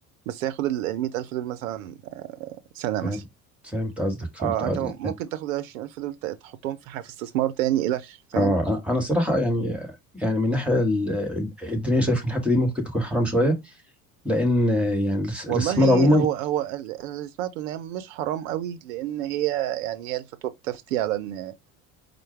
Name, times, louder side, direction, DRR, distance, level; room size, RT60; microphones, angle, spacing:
voice 1, 0.3-3.2 4.4-8.6 15.5-21.5, right 13 dB, 65° right, 0.5 m, -29 dB
voice 2, 3.7-4.8 8.3-13.5 14.2-16.2, left 1 dB, 5° right, 1.5 m, -23 dB
4.3 x 2.1 x 4.5 m
figure-of-eight pair, 60°, 43 cm